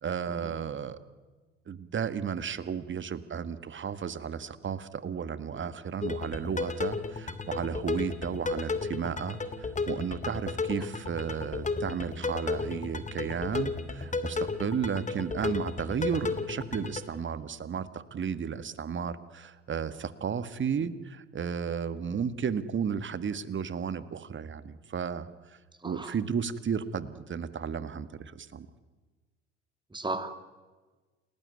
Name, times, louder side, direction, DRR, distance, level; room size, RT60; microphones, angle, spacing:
voice 1, 0.0-1.0 1.7-25.6 25.8-28.7, right 7 dB, 35° right, 14 dB, 1.9 m, -33 dB
sound 1, 6.0-17.0, left 3 dB, 20° left, 2.6 m, -33 dB
voice 2, 25.8-26.1 29.9-30.4, right 2 dB, 15° right, 10 dB, 2.7 m, -36 dB
29.5 x 19.5 x 9.5 m, 1.3 s
figure-of-eight pair, 60°, 36 cm